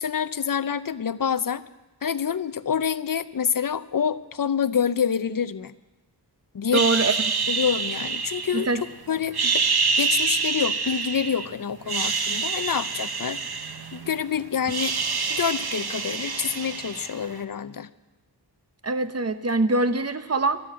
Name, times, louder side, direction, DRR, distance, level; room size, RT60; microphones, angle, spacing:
voice 1, 0.0-1.6 2.0-5.7 6.5-6.8 7.5-8.7 9.1-9.6 10.0-13.7 13.9-15.0 15.3-17.9, left 7 dB, 50° left, 15 dB, 0.6 m, -27 dB
voice 2, 6.7-7.1 8.5-8.8 18.8-20.6, right 2 dB, 35° right, 11 dB, 0.9 m, -23 dB
sound 1, 6.7-8.9 9.3-11.5 11.8-14.2 14.5-17.3, right 5 dB, 60° right, 1.0 m, -27 dB
13.0 x 12.5 x 7.5 m, 1.0 s
wide cardioid pair, 70°, 42 cm